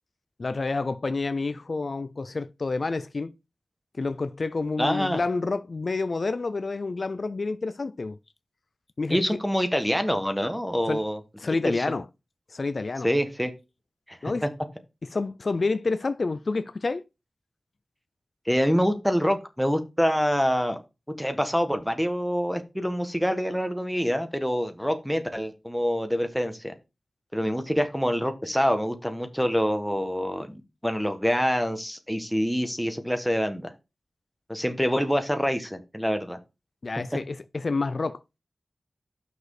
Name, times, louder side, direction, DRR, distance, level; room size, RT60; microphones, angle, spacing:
voice 1, 0.4-3.3 3.9-8.2 9.0-9.4 10.9-11.0 11.4-12.1 12.5-13.1 14.2-14.5 15.1-17.0 36.8-38.2, left 3 dB, 60° left, 0.4 m, -28 dB
voice 2, 4.8-5.2 9.1-11.2 11.6-11.8 13.0-13.5 14.1-14.5 18.5-20.8 21.2-26.7 27.3-33.7 34.5-36.4, equal, ahead, 1.4 m, -26 dB
6.2 x 4.8 x 4.9 m
wide cardioid pair, 60°, 0 cm